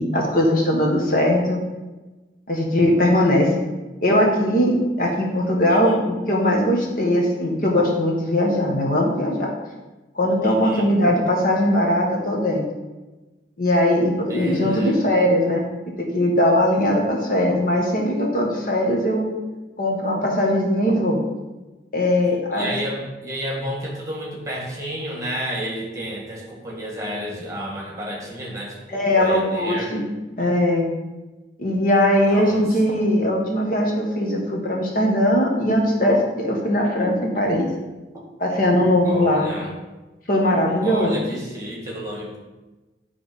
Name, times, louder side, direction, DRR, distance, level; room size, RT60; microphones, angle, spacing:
voice 1, 0.0-1.6 2.5-3.5 4.0-9.5 10.1-12.6 13.6-15.7 16.0-19.3 19.8-21.2 21.9-22.7 28.9-30.0 30.4-30.9 31.6-37.7 38.4-39.5 40.3-41.2, left 1 dB, 50° left, -1 dB, 1.4 m, -20 dB
voice 2, 10.4-10.9 14.3-15.0 22.5-29.9 32.2-33.0 39.0-39.7 40.8-42.4, equal, 20° right, -2 dB, 1.7 m, -31 dB
10.0 x 3.5 x 5.3 m, 1.1 s
head